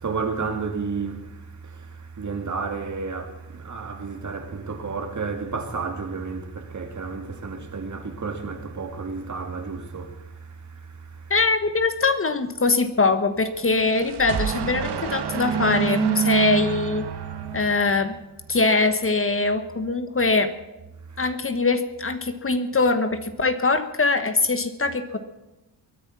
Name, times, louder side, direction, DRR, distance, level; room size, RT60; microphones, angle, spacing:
voice 1, 0.0-11.3 17.5-17.6 21.1-21.2, right 4 dB, 45° right, 2.7 m, -32 dB
voice 2, 11.3-17.1 17.5-18.2 18.5-20.5 21.2-25.2, left 3 dB, 30° left, 1.4 m, -22 dB
sound 1, 13.6-18.2, right 8 dB, 70° right, 1.8 m, -27 dB
22.0 x 9.9 x 6.1 m
cardioid pair, 105°, 41 cm